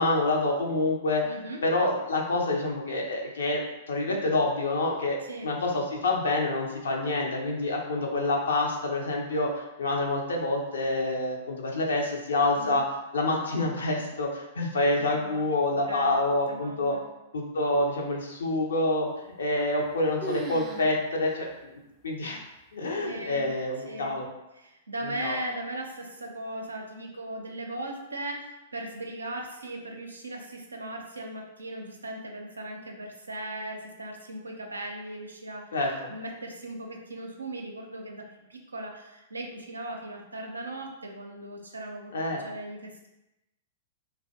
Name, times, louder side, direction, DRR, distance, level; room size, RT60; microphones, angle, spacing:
voice 1, 0.0-1.2 1.6-5.2 5.4-12.9 13.1-17.0 17.3-19.1 19.4-21.7 22.0-22.4 22.7-24.3 25.0-25.4 35.7-36.1 42.1-42.4, left 2 dB, 70° left, 0 dB, 0.5 m, -27 dB
voice 2, 1.2-1.6 5.2-5.5 12.6-12.8 15.2-15.4 15.7-16.2 16.5-17.0 23.0-23.5 23.9-24.2 24.5-35.7 36.1-38.2 38.5-43.1, right 1 dB, 85° right, 2 dB, 0.4 m, -38 dB
sound 1, 19.4-19.9 20.2-20.9 21.3-21.4 22.0-22.1 22.9-23.3, right 1 dB, 15° right, 0.3 m, -38 dB
2.4 x 2.1 x 2.7 m, 0.95 s
figure-of-eight pair, 105°, 0 cm